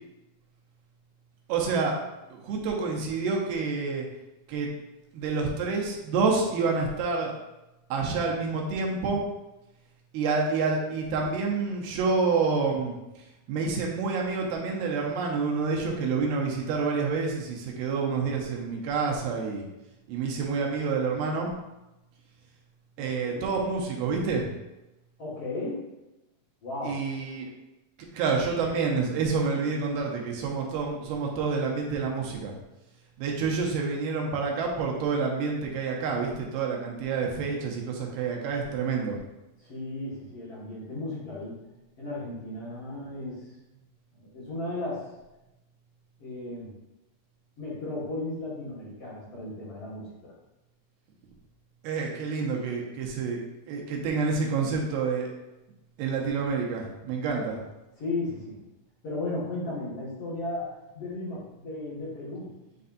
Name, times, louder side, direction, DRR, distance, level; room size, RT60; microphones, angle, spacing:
voice 1, 1.5-2.0 2.3-4.1 4.5-4.7 5.1-7.3 7.9-9.2 10.1-12.9 13.5-19.7 20.1-21.5 23.0-24.5 26.8-27.5 28.1-32.5 33.2-39.2 51.8-53.4 53.7-55.3 56.0-57.6, right 4 dB, 80° right, -1 dB, 2.8 m, -28 dB
voice 2, 23.0-23.5 25.2-25.8 26.6-27.0 39.6-41.6 42.0-43.5 44.1-45.0 46.2-46.7 47.6-50.3 57.4-57.5 58.0-58.6 59.0-60.7 60.9-62.5, left 2 dB, 50° left, -9 dB, 2.2 m, -35 dB
9.1 x 4.1 x 2.6 m, 0.96 s
omnidirectional pair, 4.3 m